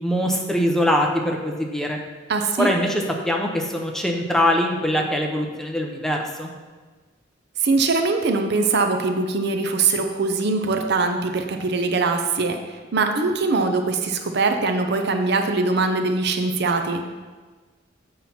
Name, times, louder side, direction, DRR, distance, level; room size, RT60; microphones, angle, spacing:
voice 1, 0.0-2.0 2.6-6.5, equal, ahead, 0 dB, 0.7 m, -23 dB
voice 2, 2.3-2.7 7.6-17.0, right 3 dB, 55° right, 5 dB, 0.6 m, -22 dB
7.6 x 5.6 x 4.3 m, 1.3 s
head